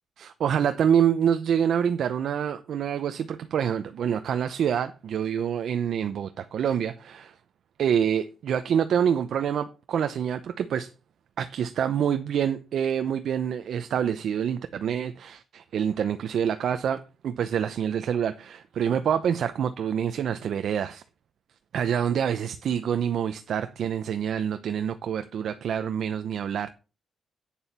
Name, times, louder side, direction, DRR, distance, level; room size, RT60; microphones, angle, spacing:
voice 1, 0.2-7.3 7.8-10.9 11.4-21.0 21.7-26.7, right 8 dB, 70° right, 0.7 m, -26 dB
8.7 x 7.1 x 5.8 m
cardioid pair, 135°, 0 cm